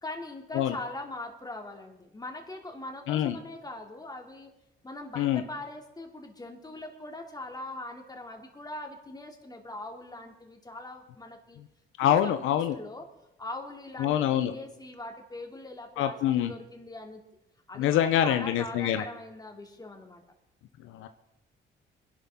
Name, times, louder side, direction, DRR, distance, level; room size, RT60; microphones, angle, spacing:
voice 1, 0.0-4.5 4.8-11.6 12.0-13.1 13.4-17.2 17.7-20.2, left 2 dB, 20° left, 2 dB, 2.7 m, -41 dB
voice 2, 12.0-12.8 14.0-14.5 16.0-16.5 17.8-19.0 20.8-21.1, left 10 dB, 90° left, 9 dB, 0.8 m, -25 dB
25.0 x 11.5 x 3.7 m, 0.91 s
cardioid pair, 90°, 20 cm